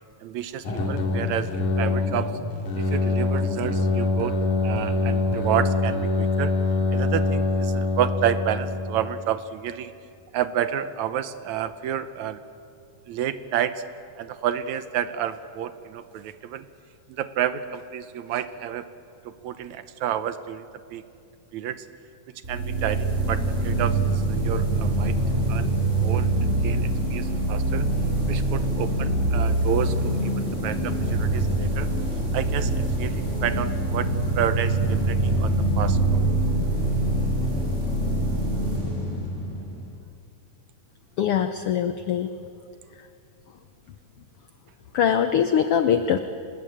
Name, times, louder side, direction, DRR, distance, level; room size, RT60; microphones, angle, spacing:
voice 1, 0.2-2.4 2.8-4.4 4.6-6.5 6.9-9.9 10.3-12.4 13.1-13.7 14.2-16.6 17.1-18.9 19.4-20.7 20.9-21.0 21.5-21.8 22.5-25.2 25.5-27.9 28.3-31.9 32.3-32.7 33.0-34.1 34.4-36.2, right 10 dB, 75° right, 12 dB, 1.9 m, -30 dB
sound 1, 0.6-9.2, left 3 dB, 65° left, 4.1 m, -24 dB
sound 2, 22.4-40.0, right 2 dB, 20° right, 7.5 m, -24 dB
voice 2, 41.2-42.3 44.9-46.2, left 8 dB, 90° left, 9 dB, 1.2 m, -22 dB
25.5 x 20.0 x 8.7 m, 2.4 s
omnidirectional pair, 3.7 m